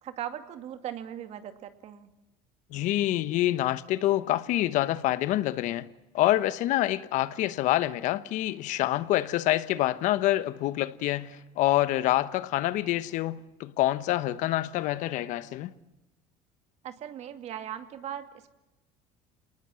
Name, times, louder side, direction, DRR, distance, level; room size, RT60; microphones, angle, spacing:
voice 1, 0.0-2.1 16.8-18.5, right 10 dB, 50° right, 2.4 m, -39 dB
voice 2, 2.7-5.9 6.1-15.7, left 15 dB, 65° left, 1.2 m, -26 dB
27.0 x 19.5 x 7.7 m
supercardioid pair, 115°, 14 cm